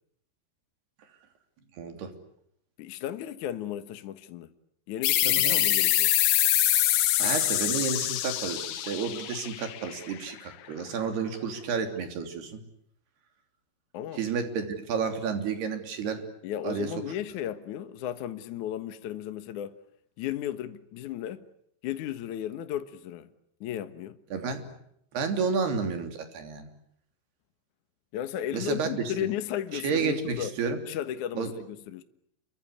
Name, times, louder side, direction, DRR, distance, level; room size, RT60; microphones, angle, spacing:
voice 1, 1.8-2.1 5.2-5.6 7.2-12.6 14.1-16.2 16.6-16.9 24.3-24.7 25.1-26.7 28.5-29.1 29.7-30.8 31.4-31.5, right 5 dB, 65° right, 5.1 m, -31 dB
voice 2, 2.8-4.5 4.9-6.1 13.9-14.2 16.4-19.8 20.2-21.5 21.8-23.3 23.6-24.2 28.1-30.5 30.9-32.0, left 11 dB, 65° left, 2.0 m, -35 dB
sound 1, 5.0-10.3, left 14 dB, 85° left, 3.6 m, -25 dB
29.5 x 23.5 x 8.3 m
omnidirectional pair, 5.1 m